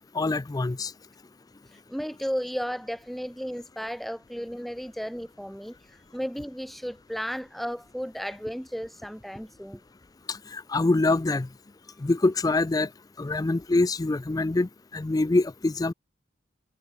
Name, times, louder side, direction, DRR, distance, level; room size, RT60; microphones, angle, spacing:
voice 1, 0.2-0.9 10.3-11.5 12.0-12.9 13.2-15.9, left 2 dB, 20° left, 0.4 m, -25 dB
voice 2, 1.9-5.8 6.1-9.8, equal, ahead, 1.6 m, -34 dB
head